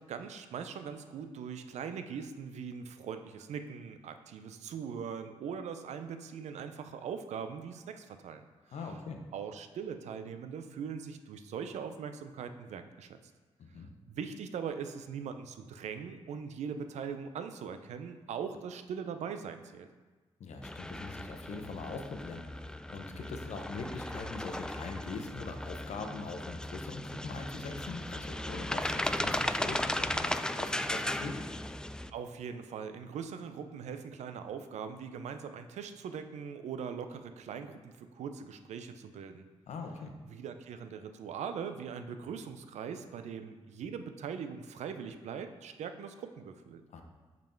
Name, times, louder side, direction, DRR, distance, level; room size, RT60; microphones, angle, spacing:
voice 1, 0.0-8.4 8.8-8.9 9.3-13.2 14.1-19.9 32.1-39.5 40.3-47.0, right 6 dB, 80° right, 9 dB, 0.5 m, -41 dB
voice 2, 8.7-9.2 13.6-13.9 20.4-31.4 39.7-40.1 46.9-47.0, left 4 dB, 75° left, 4 dB, 0.9 m, -42 dB
sound 1, 20.6-32.1, left 1 dB, 5° left, 0.4 m, -36 dB
5.3 x 5.3 x 4.4 m, 1.3 s
supercardioid pair, 50°, 12 cm